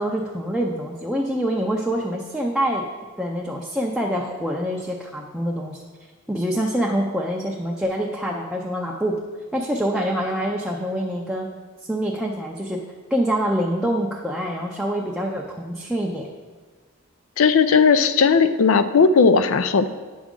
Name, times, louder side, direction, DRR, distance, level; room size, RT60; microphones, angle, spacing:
voice 1, 0.0-2.8 3.2-5.8 6.3-9.2 9.5-11.5 11.9-12.8 13.1-16.3, equal, ahead, -2 dB, 0.5 m, -25 dB
voice 2, 17.4-19.9, left 5 dB, 65° left, 12 dB, 0.4 m, -16 dB
9.0 x 6.1 x 3.7 m, 1.4 s
head